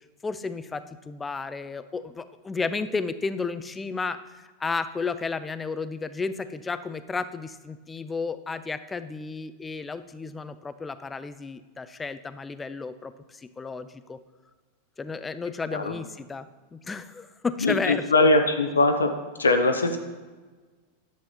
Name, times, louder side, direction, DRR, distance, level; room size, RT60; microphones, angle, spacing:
voice 1, 0.2-14.2 15.0-18.3, left 4 dB, 15° left, 13 dB, 0.4 m, -33 dB
voice 2, 17.6-19.1 19.4-20.0, left 2 dB, 75° left, 6 dB, 0.6 m, -21 dB
10.0 x 7.3 x 2.8 m, 1.3 s
figure-of-eight pair, 90°, 0 cm